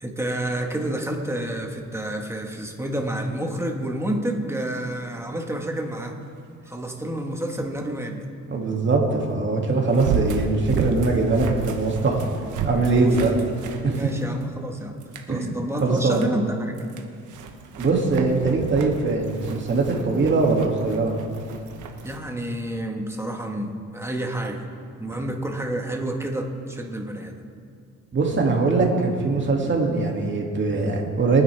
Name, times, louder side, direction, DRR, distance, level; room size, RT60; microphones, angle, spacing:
voice 1, 0.0-6.2 6.7-8.3 11.3-11.5 12.9-13.4 13.9-15.0 15.3-16.8 22.0-24.7 25.0-27.4, right 1 dB, 10° right, 2 dB, 1.6 m, -29 dB
voice 2, 8.5-12.2 12.6-13.3 13.8-14.0 15.3-15.5 15.8-16.3 17.8-21.2 25.1-25.2 28.1-31.4, right 3 dB, 40° right, 0 dB, 2.5 m, -22 dB
sound 1, 9.9-14.6 15.0-15.3 15.8-16.3 16.7-22.2, right 5 dB, 85° right, 1.3 m, -32 dB
22.5 x 9.8 x 3.6 m, 2.3 s
cardioid pair, 90°, 30 cm